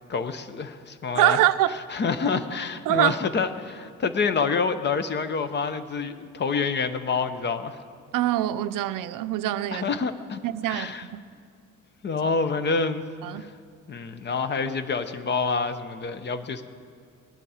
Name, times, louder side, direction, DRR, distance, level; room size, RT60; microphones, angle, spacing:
voice 1, 0.1-1.4 1.9-7.8 9.7-10.4 10.7-11.1 12.0-13.0 13.3-13.5 13.9-16.6, left 5 dB, 35° left, 0.6 m, -27 dB
voice 2, 1.1-1.8 2.9-3.2 8.1-9.9 10.4-11.3 13.2-13.5, right 14 dB, 80° right, 0.5 m, -24 dB
19.0 x 10.5 x 4.9 m
cardioid pair, 165°, 32 cm